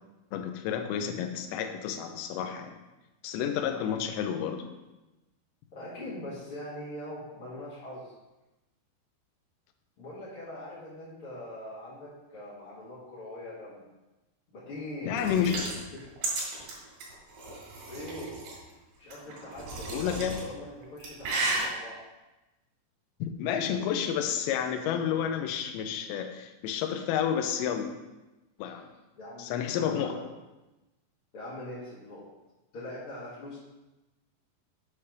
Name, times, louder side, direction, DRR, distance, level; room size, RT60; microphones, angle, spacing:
voice 1, 0.3-2.8 3.2-4.6 15.0-15.7 19.9-20.4 23.2-27.9 28.6-28.9 29.4-30.2, left 8 dB, 85° left, 6 dB, 2.8 m, -30 dB
voice 2, 3.6-4.0 5.7-8.1 10.0-13.8 14.5-15.6 15.9-16.0 17.9-18.4 19.0-22.0 28.6-28.8 29.1-30.2 31.3-32.2 32.7-33.6, left 1 dB, 60° left, -9 dB, 1.4 m, -42 dB
sound 1, 15.1-18.6 19.1-20.4 20.8-21.6, right 3 dB, 70° right, 4.0 m, -33 dB
8.5 x 3.3 x 5.8 m, 1.0 s
omnidirectional pair, 5.1 m